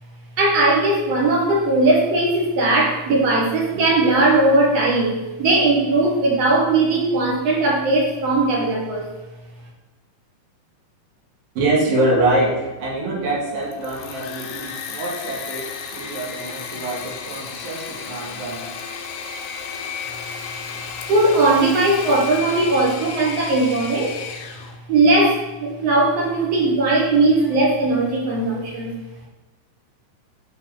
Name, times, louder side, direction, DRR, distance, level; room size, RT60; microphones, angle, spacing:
voice 1, 0.4-9.1 21.1-24.1 24.9-28.9, right 2 dB, 55° right, -2 dB, 2.1 m, -18 dB
voice 2, 11.6-18.7, right 2 dB, 85° right, -5 dB, 3.8 m, -24 dB
Engine / Mechanisms, 13.6-24.8, left 6 dB, 75° left, 2.1 m, -33 dB
11.0 x 4.0 x 3.9 m, 1.1 s
omnidirectional pair, 3.9 m